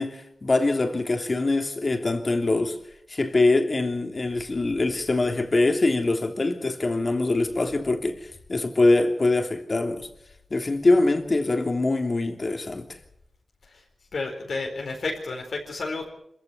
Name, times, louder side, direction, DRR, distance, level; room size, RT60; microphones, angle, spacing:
voice 1, 0.0-2.8 3.1-8.2 8.5-10.1 10.5-12.9, left 2 dB, 50° left, 3.2 m, -23 dB
voice 2, 14.1-16.1, left 3 dB, 80° left, 4.5 m, -31 dB
26.0 x 15.5 x 6.9 m
cardioid pair, 40°, 0 cm